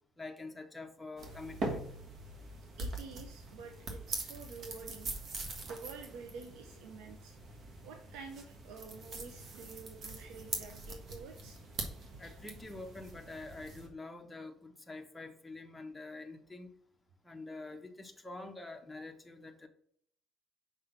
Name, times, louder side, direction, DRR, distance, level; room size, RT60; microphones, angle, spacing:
voice 1, 0.2-1.9 12.2-16.7 17.2-19.7, left 2 dB, 10° left, 3 dB, 1.0 m, -46 dB
sound 1, 1.2-13.9, right 2 dB, 55° right, 1.5 m, -43 dB
voice 2, 2.8-5.1 5.6-7.3 7.8-11.6, right 5 dB, 80° right, 4 dB, 0.7 m, -49 dB
5.9 x 3.7 x 5.7 m, 0.64 s
supercardioid pair, 80°, 0 cm